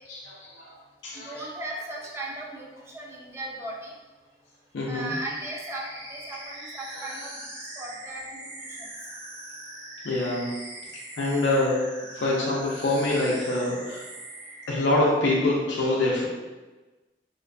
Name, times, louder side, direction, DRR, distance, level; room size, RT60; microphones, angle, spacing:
voice 1, 0.1-0.7 1.0-1.4 4.7-5.1 10.0-10.5 11.2-11.8 12.2-14.0 14.7-16.3, left 2 dB, 80° left, -5 dB, 0.5 m, -25 dB
voice 2, 1.1-3.9 4.9-7.3 7.8-8.5 8.8-8.9 11.2-11.4, right 1 dB, 15° right, -3 dB, 0.4 m, -37 dB
sound 1, 5.2-14.9, right 1 dB, 80° right, 0.6 m, -41 dB
2.5 x 2.2 x 2.5 m, 1.2 s
head